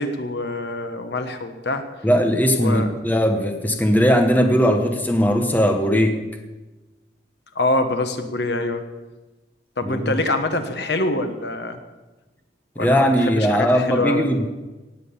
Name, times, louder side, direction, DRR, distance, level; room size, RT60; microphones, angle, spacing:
voice 1, 0.0-1.9 2.6-2.9 7.5-8.8 9.8-11.8 12.8-14.3, left 2 dB, 65° left, 7 dB, 1.2 m, -25 dB
voice 2, 2.0-6.2 9.8-10.1 12.8-14.5, equal, 10° left, 4 dB, 1.1 m, -19 dB
17.5 x 7.6 x 7.0 m, 1.2 s
head